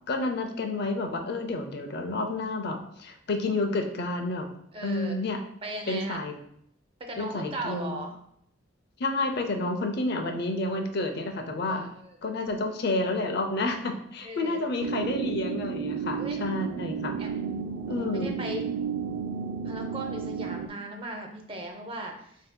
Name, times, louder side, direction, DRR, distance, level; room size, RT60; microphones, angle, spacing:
voice 1, 0.1-4.5 4.8-5.4 5.9-6.3 7.2-8.1 9.0-11.9 12.2-17.1 17.9-18.3, left 2 dB, 55° left, 5 dB, 0.6 m, -30 dB
voice 2, 4.7-5.2 5.6-6.2 7.0-8.1 11.7-12.2 14.2-14.6 16.2-16.5 17.2-17.6 17.9-18.6 19.6-22.4, right 1 dB, 30° right, 3 dB, 0.6 m, -38 dB
sound 1, 14.8-20.7, right 6 dB, 70° right, 0.3 m, -32 dB
7.6 x 2.7 x 2.2 m, 0.69 s
head